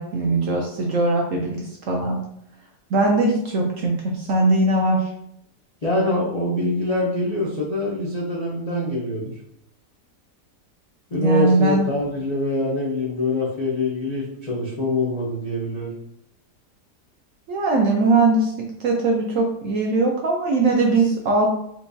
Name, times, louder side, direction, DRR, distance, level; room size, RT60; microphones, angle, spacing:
voice 1, 0.0-2.2 2.9-5.1 11.2-11.9 17.5-21.5, right 2 dB, 70° right, 0 dB, 0.7 m, -20 dB
voice 2, 5.8-9.3 11.1-15.9, left 2 dB, 70° left, -6 dB, 0.3 m, -24 dB
4.4 x 2.3 x 2.6 m, 0.75 s
omnidirectional pair, 1.8 m